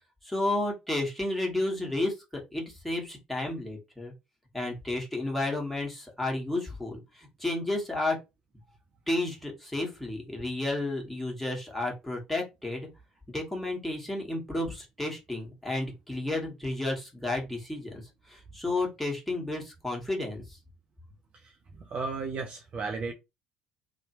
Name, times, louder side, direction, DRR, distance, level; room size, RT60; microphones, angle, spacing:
voice 1, 0.2-4.1 4.5-8.2 9.1-12.9 13.3-18.0 18.3-20.6, left 2 dB, 5° left, 1.4 m, -32 dB
voice 2, 21.3-23.1, right 4 dB, 40° right, 0.6 m, -35 dB
2.8 x 2.1 x 3.0 m
figure-of-eight pair, 55°, 3 cm